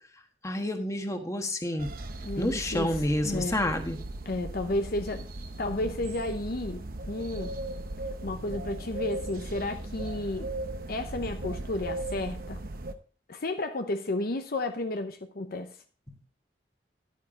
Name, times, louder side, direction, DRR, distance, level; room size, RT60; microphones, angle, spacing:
voice 1, 0.4-1.9 2.4-4.0, left 1 dB, 20° left, 1.4 m, -29 dB
sound 1, 1.8-12.9, right 2 dB, 55° right, 0.9 m, -38 dB
voice 2, 2.2-2.9 3.2-3.6 4.3-5.3 5.6-7.5 8.2-10.5 10.9-12.6 13.3-15.7, left 2 dB, 60° left, 0.8 m, -32 dB
11.0 x 9.3 x 3.8 m
head